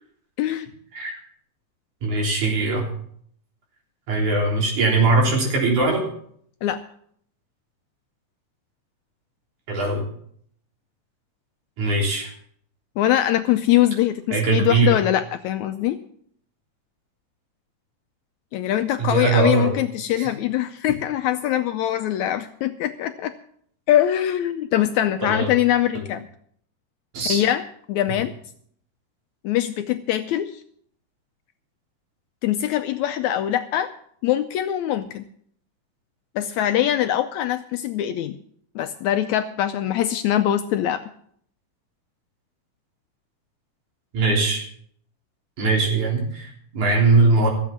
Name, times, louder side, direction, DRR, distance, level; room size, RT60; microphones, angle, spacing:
voice 1, 2.0-2.9 4.1-6.0 9.7-10.0 11.8-12.3 14.3-15.0 19.0-19.7 20.2-20.3 25.2-25.5 27.1-27.4 44.1-44.6 45.6-47.5, right 3 dB, 70° right, -1 dB, 5.1 m, -20 dB
voice 2, 13.0-16.0 18.5-23.3 23.9-26.3 27.3-27.6 27.9-28.3 29.4-30.6 32.4-33.9 34.2-35.2 36.4-38.4 38.8-41.0, left 12 dB, 75° left, 9 dB, 1.8 m, -22 dB
14.5 x 8.3 x 7.2 m, 0.64 s
omnidirectional pair, 3.7 m